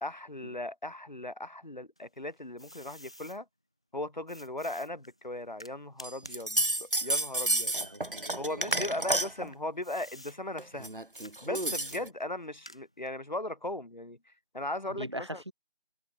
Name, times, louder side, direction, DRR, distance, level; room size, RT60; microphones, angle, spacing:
voice 1, 0.0-3.5 3.9-7.7 8.4-10.9 11.4-15.4, left 1 dB, 40° left, 2.6 m, -38 dB
sound 1, 2.0-3.4 4.3-8.2 8.6-10.4 11.1-11.4 11.8-13.1, equal, 5° left, 2.3 m, -51 dB
sound 2, 6.0-9.5 10.6-12.1, right 1 dB, 55° right, 2.9 m, -31 dB
voice 2, 7.6-8.9 14.9-15.5, equal, 25° right, 2.0 m, -42 dB
figure-of-eight pair, 175°, 33 cm